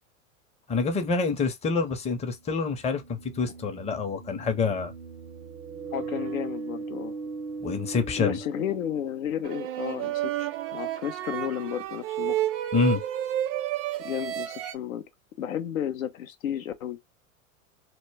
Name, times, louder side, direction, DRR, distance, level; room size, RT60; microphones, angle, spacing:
voice 1, 0.7-4.9 7.6-8.4 12.7-13.0, left 4 dB, 15° left, 0.5 m, -27 dB
sound 1, 1.1-1.2 2.7-9.6, right 4 dB, 85° right, 0.6 m, -39 dB
voice 2, 5.9-7.2 8.2-12.4 14.0-15.0 15.4-17.0, left 10 dB, 90° left, 0.6 m, -32 dB
sound 2, 9.4-14.7, right 12 dB, 35° right, 0.4 m, -30 dB
2.1 x 2.1 x 3.2 m
hypercardioid pair, 95°, 40 cm